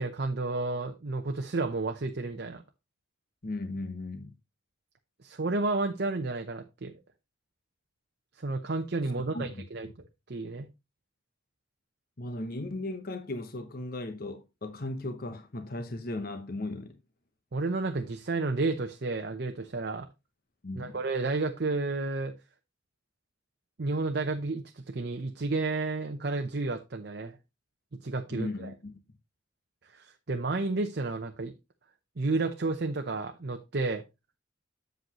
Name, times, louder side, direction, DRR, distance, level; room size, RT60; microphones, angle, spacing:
voice 1, 0.0-2.6 5.2-7.0 8.4-9.9 10.3-10.7 17.5-20.1 20.7-22.3 23.8-27.4 28.0-28.7 29.9-31.5 32.2-34.0, right 3 dB, 55° right, 0.7 m, -31 dB
voice 2, 3.4-4.3 9.3-9.6 12.2-17.0 20.6-21.0 28.3-29.0, left 2 dB, 50° left, 1.0 m, -36 dB
7.9 x 7.8 x 3.0 m
head